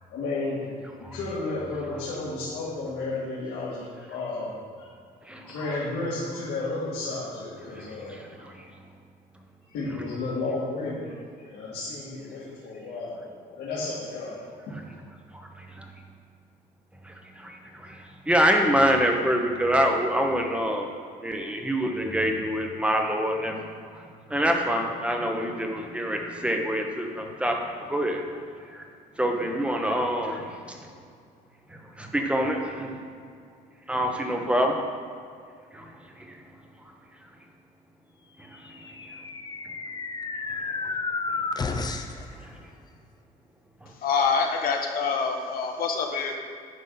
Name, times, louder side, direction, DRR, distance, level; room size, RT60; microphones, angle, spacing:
voice 1, 0.1-0.6 1.1-4.5 4.8-4.9 5.5-8.2 9.7-11.1 11.4-14.4, left 3 dB, 85° left, -10 dB, 2.0 m, -32 dB
voice 2, 17.1-18.0 18.3-20.9 21.2-23.6 24.3-28.2 28.7-28.8 29.2-30.8 32.0-32.9 33.9-34.8 35.7-35.9, equal, 5° right, 2 dB, 1.0 m, -25 dB
sound 1, 38.6-42.3, left 4 dB, 25° left, 0.6 m, -32 dB
voice 3, 44.0-46.4, left 5 dB, 60° left, 2 dB, 1.1 m, -26 dB
9.6 x 5.2 x 3.9 m, 2.2 s
cardioid pair, 110°, 17 cm